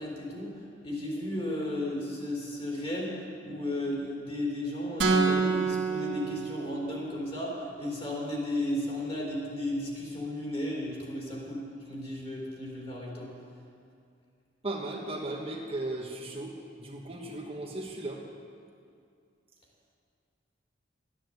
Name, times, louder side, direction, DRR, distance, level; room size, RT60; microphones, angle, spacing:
voice 1, 0.0-13.3, left 1 dB, 30° left, -4 dB, 3.7 m, -34 dB
sound 1, 5.0-7.1, right 4 dB, 70° right, 2.0 m, -27 dB
voice 2, 14.6-18.2, right 2 dB, 30° right, -1 dB, 1.2 m, -36 dB
12.5 x 9.6 x 7.8 m, 2.4 s
head